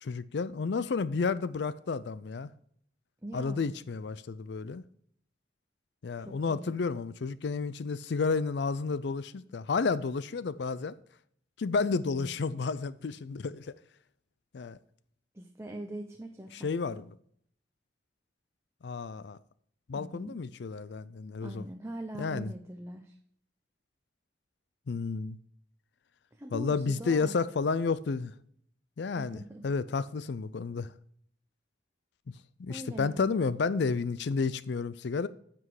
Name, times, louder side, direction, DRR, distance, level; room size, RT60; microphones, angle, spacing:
voice 1, 0.0-2.5 3.3-4.8 6.0-10.9 11.6-13.7 14.5-14.8 16.5-17.0 18.8-19.4 19.9-21.6 22.2-22.5 24.9-25.4 26.5-28.3 29.0-30.9 32.6-35.3, left 4 dB, 65° left, 0.4 m, -31 dB
voice 2, 3.2-3.7 6.2-6.8 11.9-12.6 15.3-17.0 19.9-20.4 21.4-23.1 26.3-27.3 29.1-29.7 32.7-33.4, right 1 dB, 15° right, 0.6 m, -42 dB
9.6 x 6.1 x 4.9 m
head